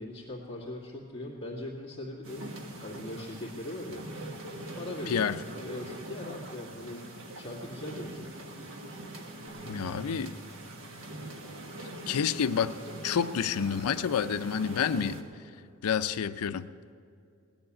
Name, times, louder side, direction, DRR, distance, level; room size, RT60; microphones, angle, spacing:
voice 1, 0.0-4.1 4.7-5.3 5.6-7.0 7.4-8.4, left 1 dB, 20° left, -9 dB, 2.1 m, -40 dB
sound 1, 2.2-15.2, right 1 dB, 65° right, 1.5 m, -42 dB
voice 2, 5.1-5.4 9.6-10.4 12.1-12.8 13.0-15.2 15.8-16.7, left 7 dB, 80° left, 11 dB, 0.5 m, -29 dB
sound 2, 9.5-15.7, right 3 dB, 25° right, 3.3 m, -53 dB
19.0 x 7.2 x 9.8 m, 2.5 s
head